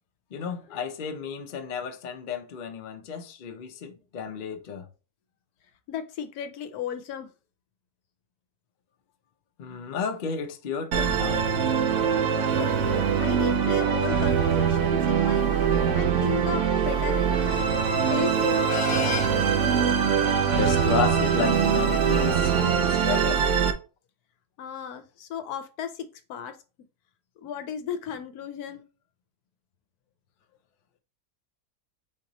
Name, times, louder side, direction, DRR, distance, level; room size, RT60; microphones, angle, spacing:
voice 1, 0.3-4.9 9.6-11.5 20.5-23.5, left 6 dB, 55° left, 0.5 m, -32 dB
voice 2, 5.9-7.3 12.6-17.7 18.0-19.5 24.6-26.6 27.4-28.8, left 8 dB, 75° left, 1.1 m, -35 dB
Musical instrument, 10.9-23.7, right 7 dB, 60° right, 0.9 m, -23 dB
4.4 x 2.9 x 3.9 m
omnidirectional pair, 1.7 m